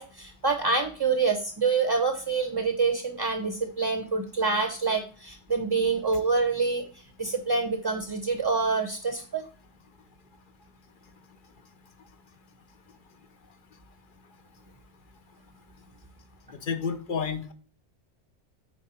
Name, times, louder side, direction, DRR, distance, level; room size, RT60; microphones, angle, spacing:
voice 1, 0.0-9.4, right 4 dB, 25° right, 7 dB, 0.7 m, -26 dB
voice 2, 16.6-17.5, left 6 dB, 45° left, 9 dB, 0.9 m, -30 dB
8.9 x 4.6 x 4.3 m, 0.39 s
omnidirectional pair, 1.3 m